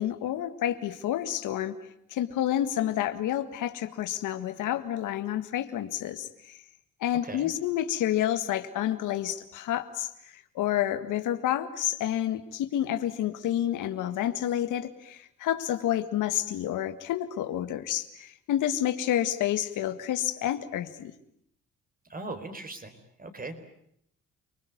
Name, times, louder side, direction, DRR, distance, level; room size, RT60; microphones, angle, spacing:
voice 1, 0.0-1.8 2.1-6.6 7.0-21.1, left 12 dB, 85° left, 9 dB, 1.9 m, -29 dB
voice 2, 22.1-23.6, right 2 dB, 30° right, 8 dB, 4.3 m, -39 dB
29.5 x 20.0 x 9.4 m, 0.73 s
cardioid pair, 90°, 30 cm